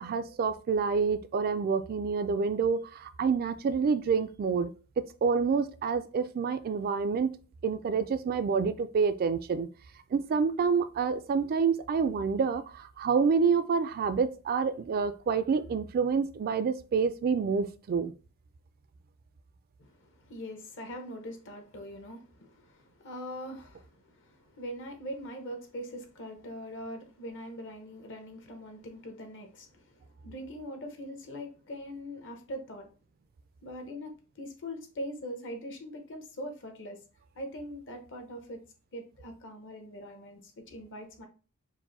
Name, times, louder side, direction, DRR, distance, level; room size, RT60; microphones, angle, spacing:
voice 1, 0.0-7.3 7.6-9.7 10.1-18.1, right 5 dB, 45° right, 0.3 m, -28 dB
voice 2, 19.8-32.9 33.6-37.0 37.3-38.6 38.9-41.3, equal, 60° left, 1.0 m, -42 dB
4.7 x 2.1 x 3.9 m
head